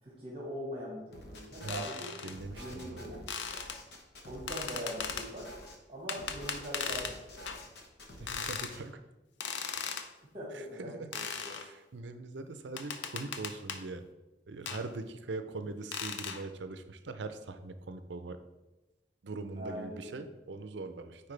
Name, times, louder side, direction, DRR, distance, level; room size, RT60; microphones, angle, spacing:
voice 1, 0.0-2.1 2.5-3.2 4.2-5.5 5.9-7.5 10.3-11.6 19.5-20.3, equal, 30° right, -5 dB, 1.6 m, -42 dB
sound 1, 1.1-1.9 2.3-5.8 6.2-8.8, left 1 dB, 60° left, 1.0 m, -48 dB
sound 2, 1.7-2.3 3.3-3.8 4.5-5.3 6.1-7.2 7.5-7.6 8.3-8.7 9.4-10.1 11.1-11.7 12.8-13.8 14.7-14.8 15.9-16.4, left 6 dB, 80° left, 0.6 m, -38 dB
voice 2, 2.2-3.1 8.2-9.0 9.7-9.8 10.5-11.1 11.5-14.1 14.5-18.4 19.2-21.3, right 3 dB, 80° right, 9 dB, 0.5 m, -42 dB
8.7 x 4.5 x 3.3 m, 1.1 s
head